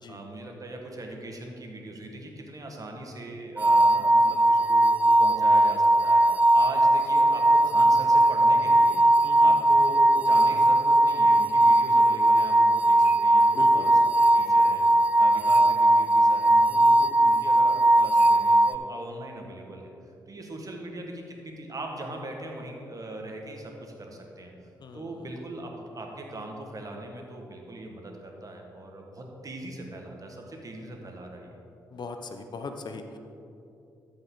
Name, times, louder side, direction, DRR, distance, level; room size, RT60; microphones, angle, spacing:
voice 1, 0.1-4.9 5.2-6.2 6.5-9.0 9.4-14.0 14.3-14.9 15.2-19.9 20.3-24.5 24.9-31.6, right 1 dB, 40° right, 2 dB, 1.7 m, -40 dB
sound 1, 3.6-18.8, right 1 dB, 15° right, 0.3 m, -19 dB
voice 2, 9.2-9.5 13.5-13.9 24.8-25.1 31.9-33.2, left 4 dB, 55° left, 6 dB, 0.7 m, -39 dB
13.5 x 5.4 x 3.9 m, 2.8 s
hypercardioid pair, 45°, 9 cm